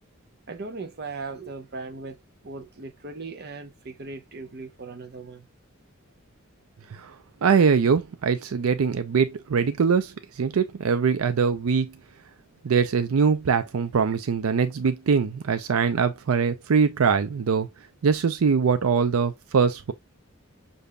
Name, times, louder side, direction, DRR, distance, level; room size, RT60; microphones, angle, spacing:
voice 1, 0.5-2.2 2.4-5.5, right 3 dB, 50° right, 0.8 m, -38 dB
voice 2, 7.4-10.1 10.4-11.9 12.6-17.7 18.0-19.9, right 6 dB, 85° right, 0.5 m, -22 dB
6.6 x 2.7 x 2.2 m
head